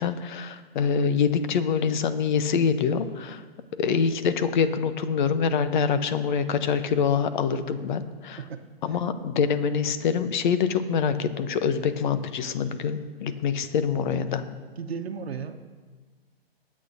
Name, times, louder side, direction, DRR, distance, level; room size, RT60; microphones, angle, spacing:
voice 1, 0.0-3.4 3.8-8.4 8.8-14.4, left 6 dB, 50° left, 11 dB, 0.9 m, -25 dB
voice 2, 8.4-9.0 14.8-15.5, right 6 dB, 80° right, 5 dB, 1.0 m, -35 dB
22.0 x 8.6 x 2.7 m, 1.4 s
hypercardioid pair, 125°, 31 cm